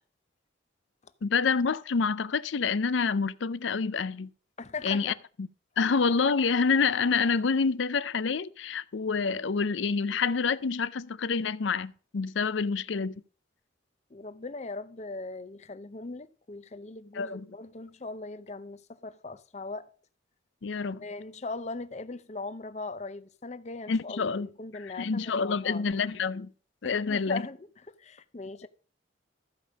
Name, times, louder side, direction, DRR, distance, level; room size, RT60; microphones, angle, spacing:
voice 1, 1.2-4.3 4.8-5.5 5.8-13.2 17.1-17.5 20.6-21.0 23.9-24.5 24.8-26.5 26.8-27.5, left 5 dB, 75° left, 0.5 m, -27 dB
voice 2, 4.6-5.2 5.8-5.9 14.1-19.9 21.0-25.9 26.8-28.7, left 3 dB, 35° left, 0.6 m, -40 dB
14.0 x 5.2 x 6.3 m
head